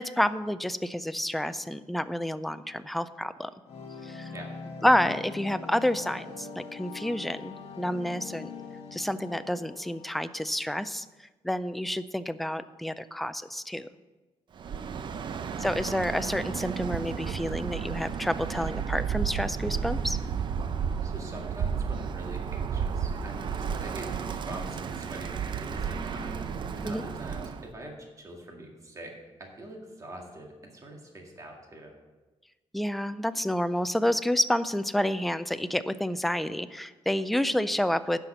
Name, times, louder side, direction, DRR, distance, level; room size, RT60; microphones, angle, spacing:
voice 1, 0.0-3.5 4.0-4.3 4.8-8.5 8.9-13.9 15.6-20.2 26.8-27.0 32.7-38.2, left 1 dB, ahead, 13 dB, 0.3 m, -29 dB
sound 1, 3.7-10.6, left 4 dB, 70° left, 1.2 m, -42 dB
voice 2, 14.6-15.3 21.0-26.4 26.8-29.1 29.4-31.9, right 1 dB, 30° right, 1 dB, 2.0 m, -44 dB
Bird, 14.6-27.7, right 7 dB, 50° right, 0.6 m, -32 dB
10.5 x 5.8 x 6.7 m, 1.2 s
cardioid pair, 135°, 11 cm